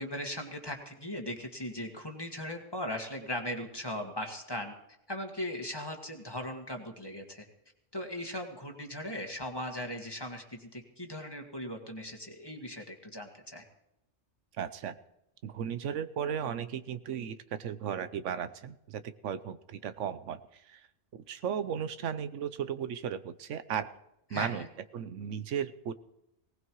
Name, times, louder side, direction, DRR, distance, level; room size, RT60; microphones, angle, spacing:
voice 1, 0.0-4.7 5.1-7.5 7.9-13.6 24.3-24.7, left 1 dB, 20° left, 3 dB, 1.8 m, -38 dB
voice 2, 14.5-15.0 15.4-20.9 21.1-23.9 24.3-24.7 24.9-25.9, right 8 dB, 85° right, 13 dB, 1.1 m, -35 dB
19.5 x 18.5 x 3.1 m, 0.83 s
omnidirectional pair, 1.2 m